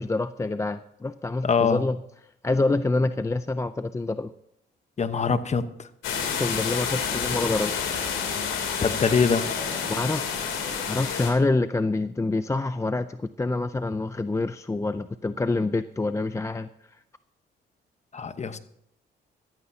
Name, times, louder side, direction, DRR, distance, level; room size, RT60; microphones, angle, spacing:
voice 1, 0.0-2.0 2.4-4.3 6.3-7.7 9.9-10.4 10.9-16.7, left 2 dB, 15° left, 12 dB, 0.5 m, -26 dB
voice 2, 1.4-1.8 5.0-5.7 8.8-9.4 18.1-18.6, left 5 dB, 35° left, 11 dB, 1.0 m, -23 dB
sound 1, 6.0-11.3, left 6 dB, 80° left, 3.0 m, -29 dB
14.5 x 14.0 x 2.8 m, 0.77 s
cardioid pair, 90°, 20 cm